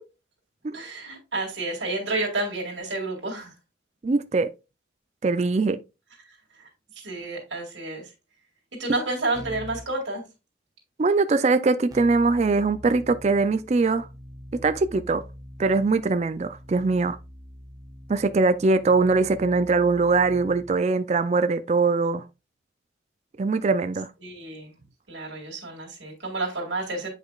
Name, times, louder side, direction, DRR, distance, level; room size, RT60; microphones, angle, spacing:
voice 1, 0.7-3.5 6.3-6.7 7.0-8.1 8.8-10.2 24.2-24.7 25.1-27.1, right 2 dB, 90° right, 2.2 m, -30 dB
voice 2, 4.0-4.5 5.2-5.8 11.0-14.1 14.6-15.2 15.6-17.2 18.1-22.2 23.4-24.1, right 3 dB, 35° right, 0.4 m, -22 dB
Keyboard (musical), 9.3-9.9 11.9-20.8, equal, 20° right, 0.8 m, -44 dB
8.2 x 5.0 x 2.4 m
head